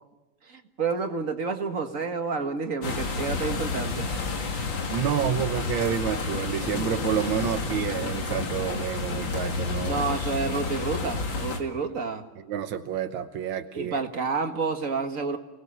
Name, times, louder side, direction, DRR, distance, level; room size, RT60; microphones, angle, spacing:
voice 1, 0.5-4.1 9.8-12.2 13.7-15.4, right 4 dB, 45° right, 6 dB, 2.0 m, -29 dB
sound 1, 2.8-11.6, left 4 dB, 70° left, 2.8 m, -30 dB
voice 2, 4.8-10.0 12.5-14.0, right 9 dB, 85° right, 7 dB, 1.8 m, -29 dB
29.5 x 19.5 x 6.8 m, 1.1 s
omnidirectional pair, 2.1 m